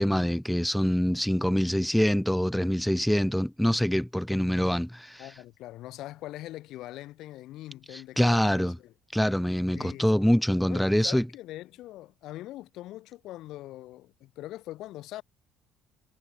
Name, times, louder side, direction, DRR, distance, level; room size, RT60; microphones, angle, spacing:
voice 1, 0.0-5.3 7.9-8.8 9.1-11.3, equal, ahead, 0.4 m, -25 dB
voice 2, 5.2-8.9 9.7-10.2 10.7-15.2, left 15 dB, 70° left, 2.1 m, -42 dB
cardioid pair, 95°, 0 cm